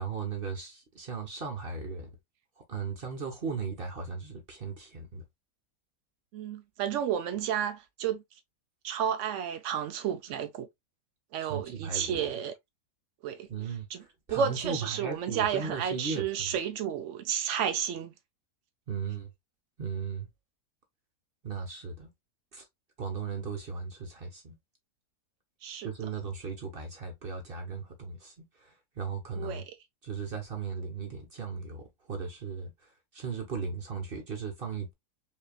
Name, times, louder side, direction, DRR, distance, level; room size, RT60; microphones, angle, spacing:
voice 1, 0.0-2.1 2.7-5.2 11.4-12.3 13.5-13.9 14.3-16.6 18.9-19.3 19.8-20.3 21.4-22.1 22.5-22.6 23.0-24.6 25.8-29.6 30.0-34.9, right 5 dB, 40° right, 0.9 m, -37 dB
voice 2, 6.3-8.2 8.8-10.7 11.3-12.5 13.2-13.5 13.9-14.0 14.3-18.1 25.6-25.9 29.3-29.6, right 8 dB, 80° right, 0.6 m, -31 dB
5.4 x 2.8 x 2.3 m
omnidirectional pair, 1.8 m